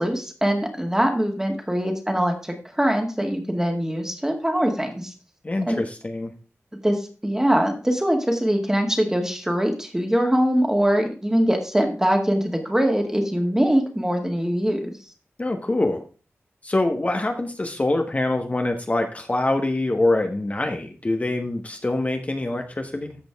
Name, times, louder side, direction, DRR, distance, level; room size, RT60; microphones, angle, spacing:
voice 1, 0.0-5.1 5.7-5.8 6.8-14.9, equal, 10° right, 2 dB, 2.0 m, -22 dB
voice 2, 5.4-6.3 15.4-16.0 16.6-23.2, left 2 dB, 30° left, 5 dB, 1.3 m, -24 dB
14.5 x 5.1 x 3.5 m, 0.36 s
wide cardioid pair, 90°, 5 cm